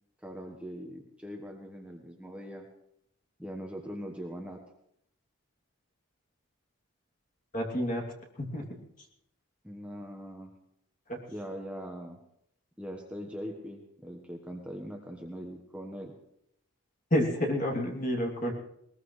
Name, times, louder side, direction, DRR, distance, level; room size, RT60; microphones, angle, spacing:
voice 1, 0.2-2.7 3.4-4.6 9.6-10.5 11.3-12.2 12.8-16.1, equal, 5° right, 1 dB, 1.2 m, -41 dB
voice 2, 7.5-8.0 8.4-8.8 11.1-11.2 17.1-18.5, equal, 35° left, 0 dB, 2.8 m, -29 dB
20.5 x 20.5 x 3.2 m, 0.76 s
head